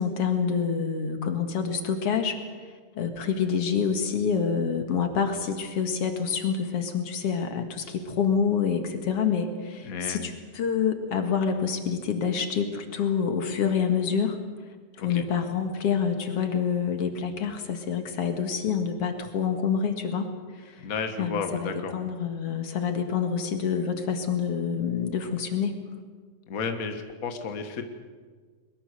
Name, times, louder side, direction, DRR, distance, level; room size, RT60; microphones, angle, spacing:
voice 1, 0.0-2.4 3.0-14.4 15.0-20.3 20.7-20.8 21.2-25.7, left 6 dB, 50° left, 6 dB, 2.3 m, -27 dB
voice 2, 9.8-10.4 15.0-15.2 20.8-21.9 26.5-27.8, left 5 dB, 90° left, 6 dB, 0.7 m, -32 dB
22.5 x 22.0 x 6.7 m, 1.5 s
omnidirectional pair, 4.1 m